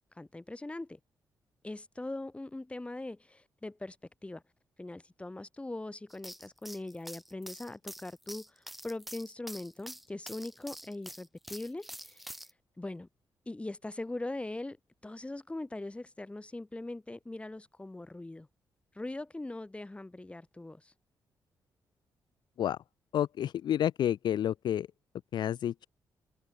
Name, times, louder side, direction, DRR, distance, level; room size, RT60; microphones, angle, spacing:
voice 1, 0.2-1.0 1.6-4.0 4.2-4.4 4.8-12.2 12.8-13.1 13.5-14.8 15.0-18.5 18.9-20.9, left 2 dB, 15° left, 1.8 m, -41 dB
sound 1, 6.1-12.5, equal, ahead, 2.7 m, -46 dB
voice 2, 23.1-24.9 25.3-25.9, left 10 dB, 75° left, 0.6 m, -30 dB
open air
cardioid pair, 80°, 8 cm